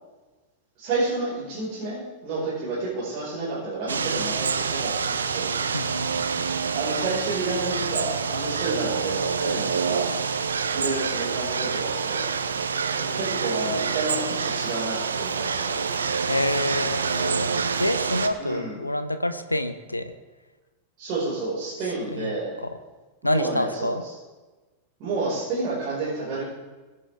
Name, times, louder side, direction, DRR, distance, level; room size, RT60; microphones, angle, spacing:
voice 1, 0.8-5.5 6.7-10.2 10.7-12.3 13.0-15.8 18.4-18.8 21.0-22.6 23.2-24.2 25.0-26.4, right 3 dB, 40° right, -8 dB, 5.3 m, -30 dB
sound 1, 3.9-18.3, right 5 dB, 70° right, 0.9 m, -27 dB
voice 2, 5.7-6.2 16.3-20.1 21.8-22.8 23.2-24.0, left 1 dB, 85° left, 10 dB, 0.8 m, -28 dB
21.5 x 9.8 x 3.6 m, 1.2 s
figure-of-eight pair, 90°, 0 cm